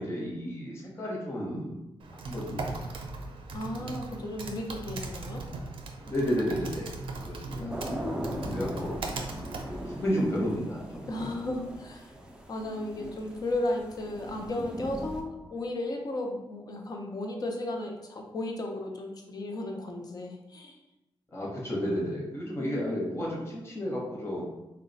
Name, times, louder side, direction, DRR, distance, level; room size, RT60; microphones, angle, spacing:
voice 1, 0.0-1.8 2.2-2.7 3.8-3.9 6.0-6.9 7.2-7.7 8.5-9.0 9.6-11.3 21.3-24.4, equal, 30° left, -4 dB, 0.9 m, -32 dB
Typing, 2.0-10.2, right 3 dB, 70° right, 0.5 m, -39 dB
voice 2, 3.5-5.4 7.6-8.6 11.1-12.1 12.5-20.8 22.6-23.1, left 1 dB, 45° left, 2 dB, 0.5 m, -35 dB
sound 1, 7.7-15.2, right 1 dB, 10° right, 0.4 m, -39 dB
3.8 x 2.2 x 3.9 m, 0.97 s
wide cardioid pair, 160°, 9 cm